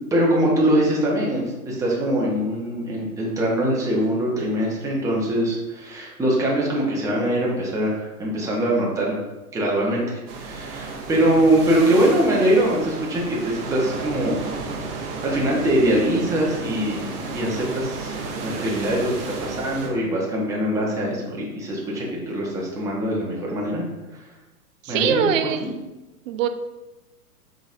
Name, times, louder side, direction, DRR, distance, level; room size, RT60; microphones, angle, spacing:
voice 1, 0.1-9.2 9.5-14.4 15.2-23.8 24.9-25.7, right 1 dB, 5° right, -4 dB, 0.8 m, -23 dB
sound 1, 10.3-19.9, right 4 dB, 40° right, 0.9 m, -33 dB
voice 2, 24.8-25.7 26.3-26.5, right 8 dB, 60° right, 9 dB, 0.5 m, -22 dB
5.3 x 3.9 x 2.5 m, 1.0 s
hypercardioid pair, 115°, 45 cm